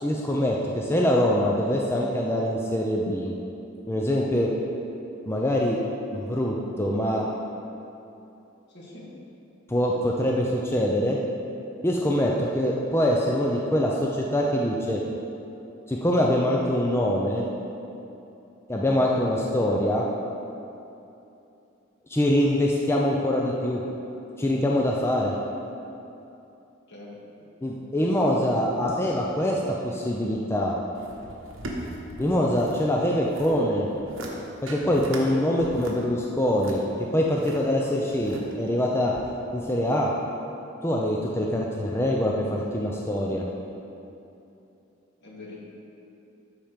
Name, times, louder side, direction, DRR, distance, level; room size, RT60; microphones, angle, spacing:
voice 1, 0.0-3.3 3.9-4.5 5.3-5.8 6.1-7.3 9.7-11.2 11.8-15.0 15.9-17.4 18.7-20.0 22.1-23.8 24.4-25.3 27.6-30.8 32.2-33.9 34.6-36.8 37.1-39.1 39.5-40.1 40.8-43.4, left 1 dB, 10° left, -2 dB, 0.5 m, -24 dB
voice 2, 8.7-9.1 26.9-27.2 28.0-28.3 45.2-45.6, left 2 dB, 60° left, -4 dB, 1.9 m, -43 dB
sound 1, 31.0-32.8 33.1-33.6 34.0-34.3 34.7-35.2 35.6-37.6 38.1-38.7 39.1-39.2, right 1 dB, 85° right, 1.3 m, -38 dB
13.0 x 4.5 x 5.1 m, 2.8 s
head